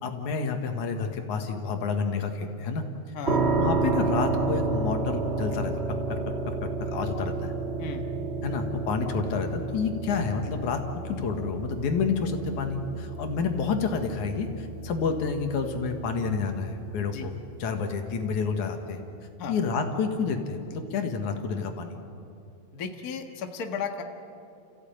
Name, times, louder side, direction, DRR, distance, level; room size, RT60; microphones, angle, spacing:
voice 1, 0.0-2.9 3.6-6.2 6.5-7.5 8.4-19.0 19.5-22.0, left 5 dB, 85° left, 5 dB, 3.1 m, -29 dB
sound 1, 3.2-18.1, right 3 dB, 30° right, 1.3 m, -31 dB
voice 2, 22.7-24.0, left 5 dB, 40° left, 4 dB, 1.6 m, -34 dB
29.5 x 15.5 x 9.0 m, 2.6 s
omnidirectional pair, 3.4 m